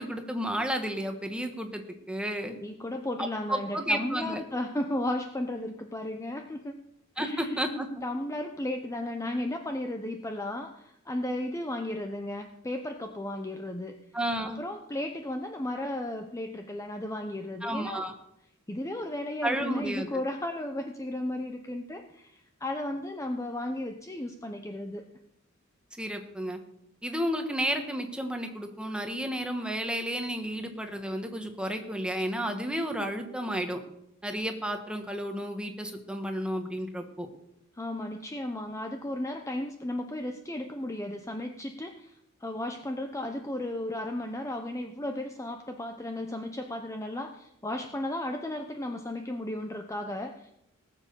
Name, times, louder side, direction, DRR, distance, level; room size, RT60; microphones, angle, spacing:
voice 1, 0.0-2.6 3.5-4.4 7.2-7.9 14.1-14.6 17.6-18.1 19.4-20.1 25.9-26.6 27.0-33.8 34.2-37.3, equal, 5° right, 5 dB, 1.5 m, -32 dB
voice 2, 2.6-6.8 7.2-7.6 8.0-13.9 14.6-18.0 18.7-25.0 37.8-42.2 42.4-50.5, left 1 dB, 15° left, 5 dB, 0.8 m, -34 dB
18.0 x 7.4 x 6.9 m, 0.80 s
head